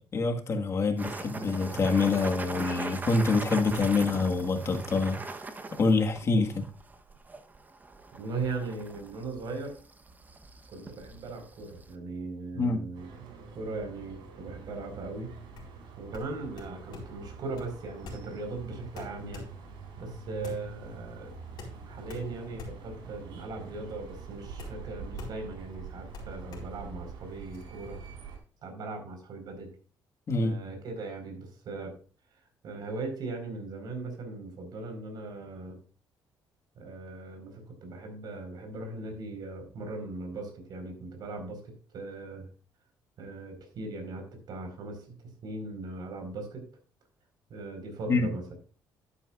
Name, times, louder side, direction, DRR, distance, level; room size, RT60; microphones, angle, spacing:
voice 1, 0.1-5.2 5.8-6.6 12.5-12.8 30.3-30.6 48.1-48.3, left 3 dB, 35° left, 4 dB, 1.6 m, -26 dB
sound 1, 1.0-11.9, right 3 dB, 20° right, 1.0 m, -41 dB
voice 2, 8.1-9.8 10.7-13.1 13.5-15.3 16.0-19.5 20.0-21.4 21.8-28.0 28.6-29.7 30.4-32.0 32.6-35.8 36.8-42.5 43.2-46.7 47.5-48.5, right 3 dB, 60° right, 4 dB, 4.5 m, -39 dB
sound 2, 12.9-28.4, right 5 dB, 90° right, 4.4 m, -45 dB
sound 3, 15.4-27.6, left 3 dB, 60° left, 4.5 m, -47 dB
11.5 x 10.0 x 2.5 m, 0.38 s
cardioid pair, 120°, 8 cm